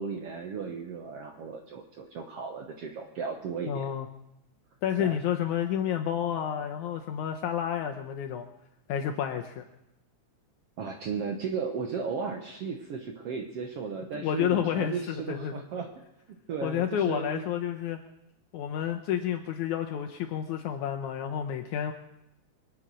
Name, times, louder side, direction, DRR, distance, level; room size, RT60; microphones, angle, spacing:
voice 1, 0.0-3.9 5.0-5.2 10.8-15.9 16.5-17.4, right 5 dB, 60° right, 4 dB, 1.8 m, -35 dB
voice 2, 3.7-4.1 4.8-8.5 8.9-9.6 14.1-15.5 16.6-18.0 18.5-21.9, left 9 dB, 75° left, 4 dB, 2.2 m, -30 dB
24.5 x 8.4 x 6.3 m, 0.89 s
omnidirectional pair, 3.6 m